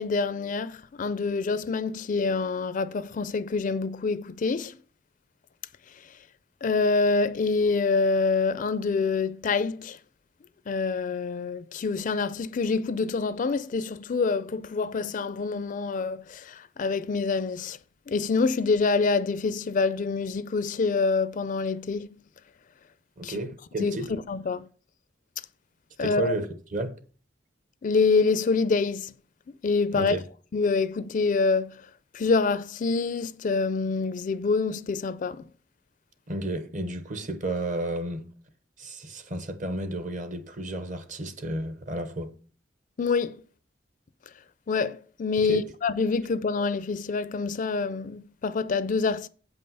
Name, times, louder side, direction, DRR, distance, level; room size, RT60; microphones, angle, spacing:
voice 1, 0.0-4.8 6.6-10.0 10.7-17.8 18.1-22.1 23.2-23.4 23.8-24.7 26.0-26.4 27.8-29.1 29.6-30.2 30.5-31.9 32.1-35.5 43.0-43.4 44.7-49.3, left 4 dB, 45° left, 0.4 m, -26 dB
voice 2, 23.2-24.1 26.0-27.0 29.9-30.2 36.3-38.3 38.8-42.3 45.4-45.7, right 1 dB, 45° right, 1.0 m, -32 dB
8.0 x 5.4 x 5.5 m
head